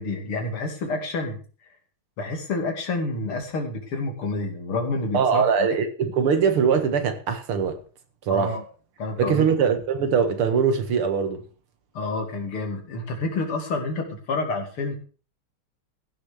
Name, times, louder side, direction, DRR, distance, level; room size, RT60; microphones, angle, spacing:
voice 1, 0.0-1.4 2.2-5.4 8.3-8.6 9.0-9.5 12.0-15.0, left 3 dB, 85° left, 3.5 m, -28 dB
voice 2, 5.1-7.8 8.3-8.5 9.2-11.4, right 6 dB, 80° right, 2.5 m, -22 dB
15.0 x 6.8 x 6.5 m
omnidirectional pair, 2.3 m